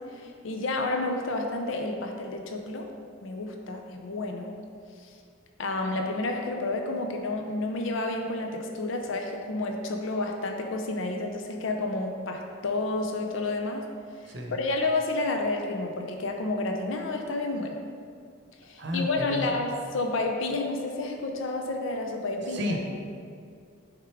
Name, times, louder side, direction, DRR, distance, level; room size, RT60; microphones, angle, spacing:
voice 1, 0.1-2.9 3.2-4.5 5.0-5.1 5.6-13.9 14.5-17.8 18.6-22.8, left 2 dB, 75° left, 3 dB, 0.5 m, -30 dB
voice 2, 18.8-19.6 22.5-22.9, left 1 dB, 60° right, 1 dB, 0.8 m, -32 dB
6.6 x 3.6 x 4.6 m, 2.3 s
head